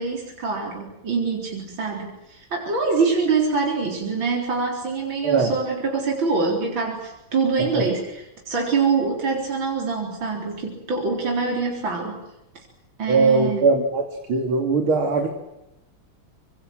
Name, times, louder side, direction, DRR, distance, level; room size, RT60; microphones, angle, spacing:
voice 1, 0.0-12.2 13.0-13.7, right 4 dB, 70° right, 0 dB, 4.9 m, -25 dB
voice 2, 5.2-5.6 7.7-7.9 13.1-15.3, right 4 dB, 90° right, 4 dB, 3.5 m, -20 dB
26.0 x 25.5 x 7.6 m, 0.90 s
omnidirectional pair, 2.2 m